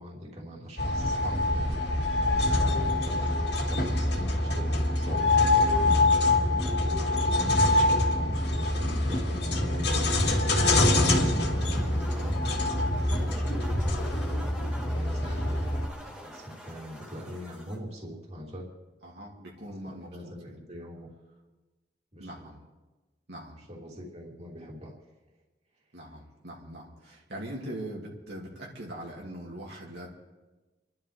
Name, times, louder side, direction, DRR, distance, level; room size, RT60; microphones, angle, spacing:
voice 1, 0.0-2.2 2.6-6.0 6.5-15.6 16.0-18.7 19.8-21.1 22.1-22.5 23.6-24.9, equal, 35° right, -2 dB, 3.0 m, -42 dB
sound 1, 0.8-15.9, left 2 dB, 65° left, 2.1 m, -25 dB
sound 2, 11.3-17.8, equal, 5° right, 1.8 m, -45 dB
voice 2, 19.0-20.6 22.2-22.6 23.3-23.6 25.9-30.1, right 1 dB, 70° right, -3 dB, 2.5 m, -41 dB
30.0 x 12.0 x 3.4 m, 1.2 s
head